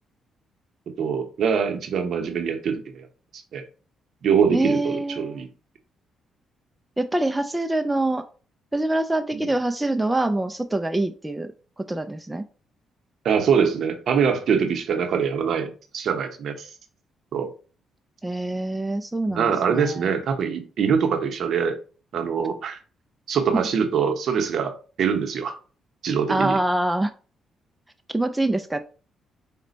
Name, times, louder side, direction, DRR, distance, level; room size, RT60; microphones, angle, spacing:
voice 1, 1.0-3.1 3.3-3.6 4.2-5.5 9.3-9.4 13.2-16.7 17.3-17.5 19.3-21.8 22.1-22.8 23.3-24.7 25.0-25.6 26.0-26.6, right 6 dB, 65° right, 0.7 m, -23 dB
voice 2, 4.5-5.4 7.0-8.2 8.7-11.5 11.8-12.5 18.2-20.1 26.3-27.1 28.1-28.8, right 2 dB, 10° right, 0.3 m, -25 dB
4.2 x 2.2 x 3.9 m
cardioid pair, 90°, 0 cm